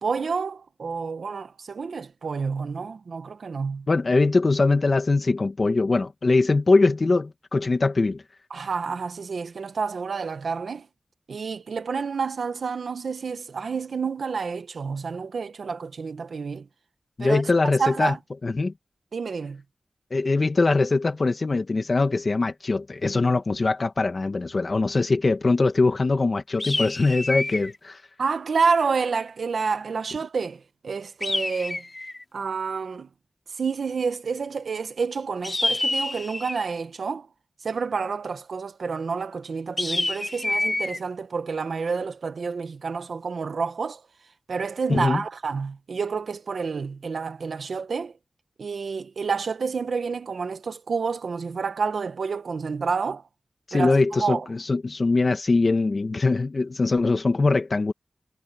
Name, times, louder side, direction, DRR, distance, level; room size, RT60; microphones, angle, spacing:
voice 1, 0.0-3.9 8.5-10.9 11.3-16.7 17.2-17.4 17.8-18.2 19.1-19.6 28.2-31.8 32.3-33.1 33.6-37.3 37.6-44.0 44.5-48.1 48.6-53.2 53.7-54.5, right 5 dB, 90° right, 1.4 m, -29 dB
voice 2, 3.9-8.2 17.2-18.1 18.4-18.7 20.1-28.0 44.9-45.2 53.7-57.9, left 3 dB, 50° left, 1.9 m, -22 dB
sound 1, 26.6-27.8 31.2-32.2 35.4-36.7 39.8-41.0, left 2 dB, 30° left, 4.0 m, -27 dB
wide cardioid pair, 85°, 0 cm